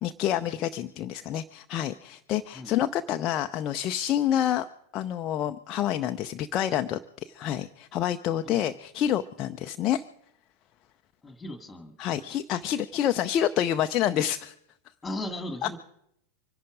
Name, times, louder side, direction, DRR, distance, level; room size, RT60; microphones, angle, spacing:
voice 1, 0.0-4.7 4.9-10.0 12.0-14.5, left 11 dB, 35° left, 7 dB, 0.6 m, -28 dB
voice 2, 11.2-11.9 12.3-12.4 15.0-15.8, left 1 dB, 10° left, 9 dB, 2.1 m, -37 dB
25.0 x 11.0 x 5.0 m, 0.75 s
figure-of-eight pair, 90°, 0 cm